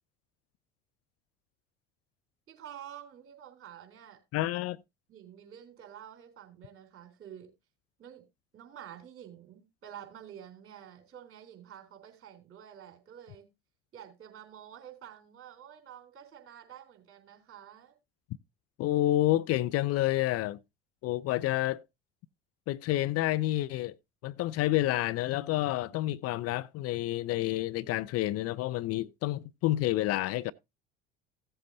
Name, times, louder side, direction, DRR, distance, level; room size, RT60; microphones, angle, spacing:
voice 1, 2.5-4.2 5.1-7.5 8.0-8.2 8.5-13.5 13.9-18.0, right 10 dB, 45° right, 3.5 m, -49 dB
voice 2, 4.3-4.8 18.8-20.6 21.0-21.8 22.7-23.9 24.2-30.5, left 15 dB, 50° left, 0.5 m, -29 dB
16.0 x 7.8 x 2.6 m
hypercardioid pair, 70°, 31 cm